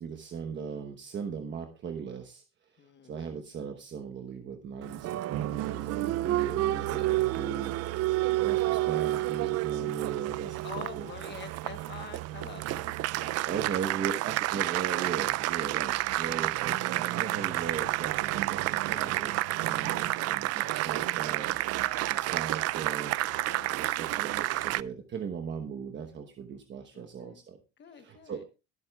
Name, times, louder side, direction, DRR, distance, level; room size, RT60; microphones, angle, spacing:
voice 1, 0.0-7.7 8.4-11.1 13.4-21.6 22.0-23.2 23.8-27.6 28.0-28.4, right 7 dB, 35° right, 5 dB, 1.1 m, -38 dB
voice 2, 2.8-3.3 6.8-7.1 8.2-8.9 10.6-13.7 16.5-17.1 18.9-19.2 19.6-20.5 21.0-21.5 23.4-24.6 26.9-27.4 27.8-28.4, left 7 dB, 35° left, 8 dB, 1.2 m, -48 dB
Applause, 4.8-24.8, right 17 dB, 55° right, 0.4 m, -30 dB
22.0 x 7.8 x 2.3 m, 0.30 s
cardioid pair, 150°, 31 cm